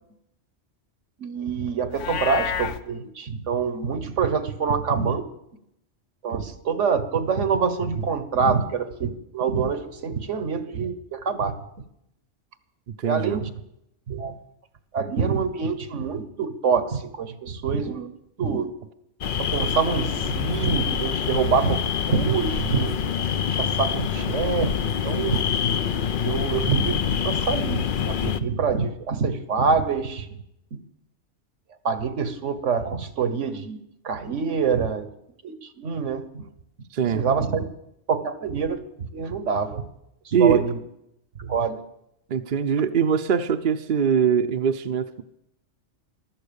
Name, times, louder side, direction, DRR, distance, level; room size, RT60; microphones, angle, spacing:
voice 1, 1.2-5.2 6.2-11.6 13.0-13.5 14.1-14.3 14.9-18.1 18.4-18.7 19.4-22.9 23.5-24.8 25.0-25.4 26.2-30.3 31.8-33.8 34.0-35.1 35.4-36.5 37.0-37.6 38.1-39.9 40.2-40.8 41.4-41.8, right 5 dB, 80° right, 11 dB, 1.5 m, -25 dB
Livestock farm animals working animals, 1.9-2.8, left 8 dB, 85° left, 1.1 m, -28 dB
voice 2, 13.0-13.4 36.9-37.3 40.3-40.6 42.3-45.2, right 7 dB, 50° right, 7 dB, 0.8 m, -22 dB
sound 1, 19.2-28.4, left 7 dB, 50° left, 0.8 m, -26 dB
15.0 x 12.5 x 7.0 m, 0.81 s
omnidirectional pair, 1.2 m